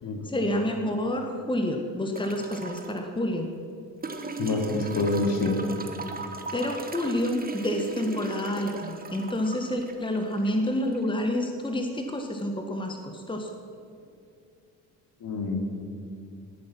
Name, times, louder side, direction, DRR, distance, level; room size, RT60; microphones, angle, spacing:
voice 1, 0.2-3.5 6.5-13.5, left 1 dB, 10° left, 4 dB, 1.6 m, -28 dB
sound 1, 2.2-3.0 4.0-11.0 12.4-12.5, right 3 dB, 20° right, 1.4 m, -38 dB
voice 2, 4.4-5.6 15.2-15.6, left 3 dB, 45° left, 2 dB, 2.8 m, -27 dB
18.5 x 9.1 x 6.1 m, 2.5 s
figure-of-eight pair, 50°, 47 cm